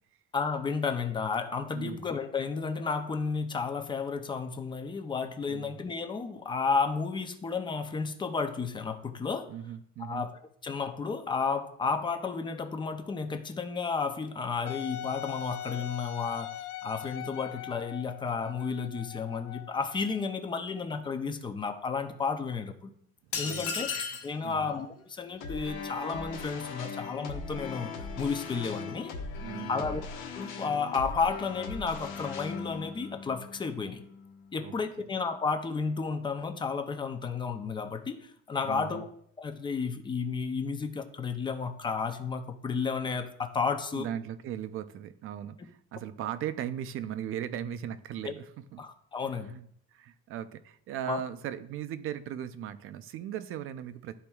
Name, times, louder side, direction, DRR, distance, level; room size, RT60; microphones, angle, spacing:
voice 1, 0.3-9.5 10.0-10.3 10.6-16.5 16.8-22.9 23.4-23.9 24.2-29.1 29.7-30.0 30.3-34.0 34.5-39.1 39.4-44.1 48.2-48.3 48.8-49.5 51.1-51.2, left 5 dB, 15° left, 7 dB, 0.4 m, -32 dB
voice 2, 1.7-2.1 5.5-5.8 9.5-10.3 23.4-24.0 24.4-24.7 29.4-29.9 34.6-34.8 38.6-39.0 43.9-48.8 49.2-54.2, right 10 dB, 45° right, 12 dB, 0.4 m, -38 dB
Wind instrument woodwind instrument, 14.7-20.3, left 11 dB, 75° left, 0.5 m, -41 dB
sound 1, 23.3-24.3, left 6 dB, 45° left, 1.0 m, -33 dB
sound 2, 25.4-34.6, left 4 dB, 90° left, 1.3 m, -40 dB
12.5 x 4.3 x 2.3 m, 0.67 s
cardioid pair, 170°, 30 cm